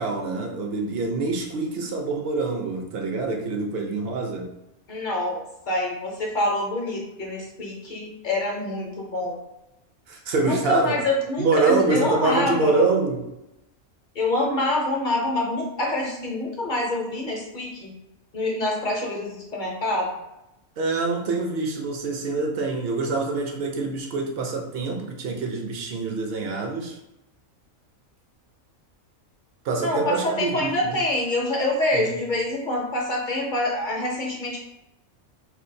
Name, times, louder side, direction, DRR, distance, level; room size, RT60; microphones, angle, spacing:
voice 1, 0.0-4.6 10.1-11.0 11.4-13.3 20.8-27.0 29.6-31.0 31.9-32.1, right 3 dB, 60° right, 2 dB, 0.8 m, -25 dB
voice 2, 4.9-9.4 10.4-12.9 14.1-17.9 18.3-20.1 29.8-34.6, left 1 dB, 45° left, -2 dB, 0.8 m, -26 dB
4.4 x 2.4 x 2.6 m, 0.90 s
omnidirectional pair, 1.3 m